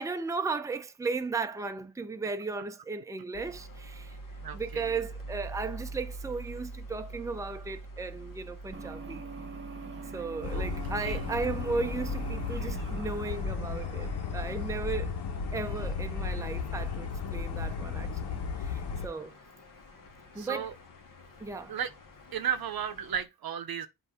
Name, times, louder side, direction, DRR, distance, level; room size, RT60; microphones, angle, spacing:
voice 1, 0.0-4.2 4.5-9.3 10.1-15.2 15.5-19.3 20.3-20.7 21.4-21.8, right 4 dB, 10° right, 0.6 m, -35 dB
sound 1, 3.3-23.2, right 2 dB, 55° left, 1.4 m, -45 dB
voice 2, 4.4-5.0 10.5-10.7 11.0-11.2 20.4-20.7 21.7-21.9 22.3-23.9, right 8 dB, 65° right, 0.8 m, -34 dB
sound 2, 8.7-15.1, right 4 dB, 30° right, 1.0 m, -45 dB
sound 3, 10.4-19.1, left 5 dB, 90° left, 1.2 m, -34 dB
8.0 x 2.7 x 4.8 m
wide cardioid pair, 100°, 38 cm